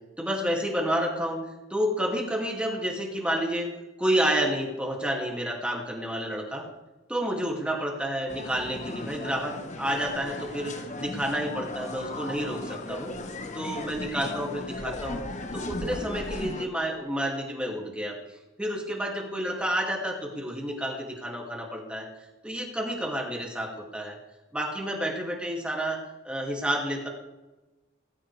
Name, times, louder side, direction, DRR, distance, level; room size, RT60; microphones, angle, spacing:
voice 1, 0.2-1.4 1.7-3.7 4.0-6.6 7.1-13.2 13.5-15.2 15.5-18.2 18.6-22.1 22.4-24.2 24.5-27.1, equal, 5° right, 0 dB, 2.4 m, -30 dB
sound 1, 8.3-16.7, left 2 dB, 35° left, 1.1 m, -36 dB
18.5 x 15.0 x 3.4 m, 1.1 s
head